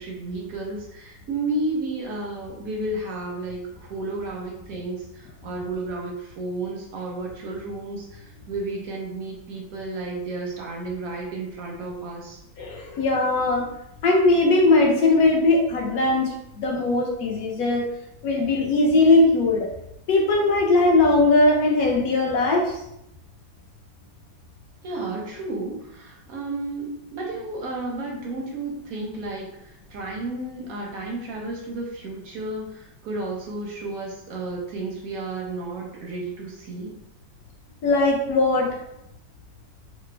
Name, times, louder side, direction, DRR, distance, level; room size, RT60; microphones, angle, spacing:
voice 1, 0.0-12.4 24.8-36.9, right 2 dB, 70° right, -1 dB, 0.8 m, -32 dB
voice 2, 12.6-13.7 14.0-17.8 18.2-19.7 20.1-22.7 37.8-38.7, left 2 dB, 65° left, -1 dB, 1.1 m, -19 dB
3.3 x 2.0 x 3.2 m, 0.81 s
omnidirectional pair, 1.9 m